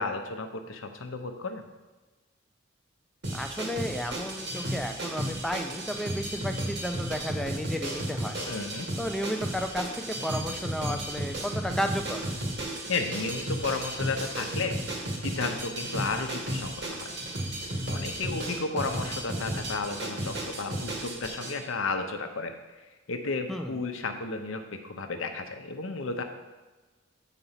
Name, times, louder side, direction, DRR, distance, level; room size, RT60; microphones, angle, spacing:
voice 1, 0.0-1.6 8.5-8.9 12.9-14.8 15.2-17.1 17.9-22.5 23.1-26.2, left 3 dB, 75° left, 6 dB, 0.8 m, -33 dB
sound 1, 3.2-21.6, right 1 dB, 55° right, 1.5 m, -34 dB
voice 2, 3.3-8.4 9.0-12.2 23.5-23.8, equal, ahead, 4 dB, 0.4 m, -33 dB
8.0 x 4.1 x 5.7 m, 1.2 s
head